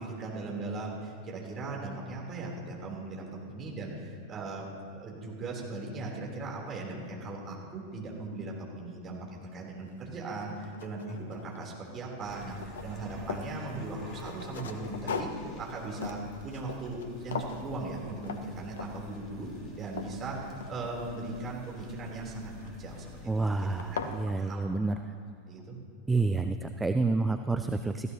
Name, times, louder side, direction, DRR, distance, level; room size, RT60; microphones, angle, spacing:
voice 1, 0.0-16.2 16.4-22.5 22.8-23.1 23.4-24.0 24.3-24.6 25.5-25.8, right 2 dB, 25° right, -2 dB, 3.4 m, -38 dB
sound 1, 9.9-10.0 10.5-11.9 12.2-13.6 14.1-17.1 17.3-17.7 18.2-18.4 18.8-19.1 19.5-21.1 22.6-23.0 23.5-23.6 23.8-24.2, left 5 dB, 60° left, 1.0 m, -39 dB
Coffeemaker-steam-hiss, 12.2-24.3, left 2 dB, 30° left, 3.1 m, -49 dB
voice 2, 23.3-25.0 26.1-28.1, right 3 dB, 10° right, 8 dB, 0.5 m, -29 dB
19.0 x 15.0 x 2.9 m, 2.5 s
figure-of-eight pair, 90°, 0 cm